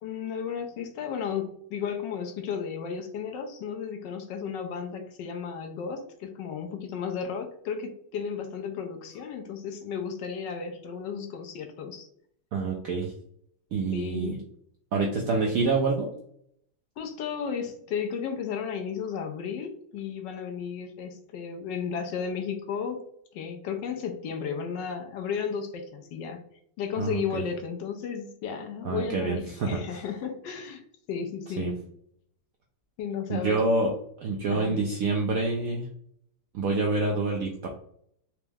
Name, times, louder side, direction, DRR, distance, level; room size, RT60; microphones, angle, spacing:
voice 1, 0.0-12.1 13.9-14.4 17.0-23.0 23.3-26.4 26.8-31.8 33.0-33.6 34.5-34.8, left 6 dB, 80° left, 5 dB, 1.2 m, -34 dB
voice 2, 12.5-13.1 13.7-14.4 14.9-16.1 27.0-27.4 28.8-30.0 31.6-31.7 33.3-33.9 34.2-35.9 36.5-37.7, right 3 dB, 75° right, 0 dB, 0.8 m, -27 dB
4.5 x 2.0 x 3.4 m, 0.67 s
omnidirectional pair, 2.0 m